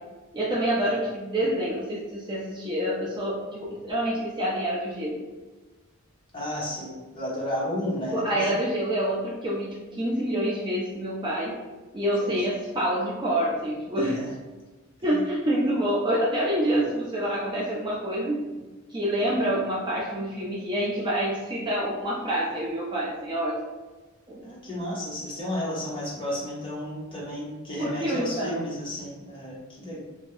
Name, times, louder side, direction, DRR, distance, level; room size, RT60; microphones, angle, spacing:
voice 1, 0.3-5.2 8.1-11.6 11.9-14.2 15.0-18.6 18.9-23.5 24.3-24.4 27.8-28.6, right 1 dB, 20° right, -5 dB, 0.5 m, -27 dB
voice 2, 6.3-8.6 12.2-12.3 14.0-14.4 15.1-15.2 24.4-30.0, left 1 dB, 25° left, -7 dB, 1.0 m, -33 dB
2.8 x 2.6 x 3.2 m, 1.2 s
head